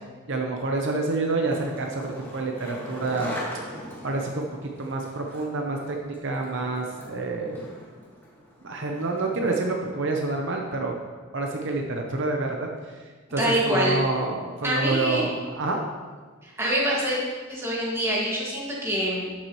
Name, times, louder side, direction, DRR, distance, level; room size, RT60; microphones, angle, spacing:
voice 1, 0.3-3.3 4.0-4.4 4.8-7.7 8.6-10.9 11.3-13.0 13.3-13.4 13.7-15.8, right 3 dB, 60° right, 1 dB, 0.8 m, -28 dB
Skateboard, 1.1-9.4, equal, 10° left, 1.8 m, -41 dB
voice 2, 13.4-14.0 14.6-15.4 16.4-17.2 17.5-19.3, equal, 10° right, -5 dB, 1.9 m, -25 dB
11.5 x 7.3 x 3.1 m, 1.5 s
head